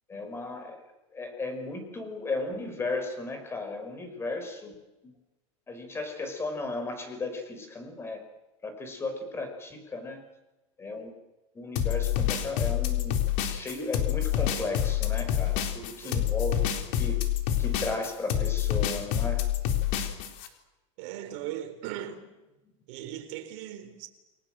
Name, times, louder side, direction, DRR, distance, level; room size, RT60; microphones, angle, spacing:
voice 1, 0.1-0.8 1.1-4.7 5.0-5.1 5.7-8.2 8.6-10.2 10.8-11.1 11.6-17.2 17.6-19.4, left 3 dB, 15° left, 5.2 m, -35 dB
sound 1, 11.8-20.5, left 11 dB, 50° left, 3.9 m, -27 dB
voice 2, 21.0-22.2 22.9-24.1, right 11 dB, 55° right, 4.3 m, -38 dB
29.5 x 22.5 x 7.8 m
supercardioid pair, 150°, 16 cm